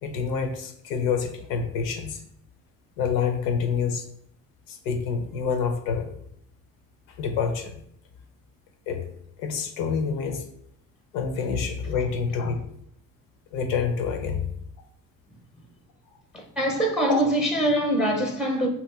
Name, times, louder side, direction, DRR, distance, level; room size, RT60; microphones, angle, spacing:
voice 1, 0.0-2.2 3.0-4.1 4.7-6.1 7.1-7.8 8.9-9.1 9.4-10.4 11.1-12.6 13.5-14.5 17.0-17.2, left 6 dB, 90° left, 0.6 m, -27 dB
voice 2, 16.3-18.7, right 1 dB, ahead, 0.5 m, -24 dB
2.8 x 2.3 x 3.4 m
supercardioid pair, 80°, 39 cm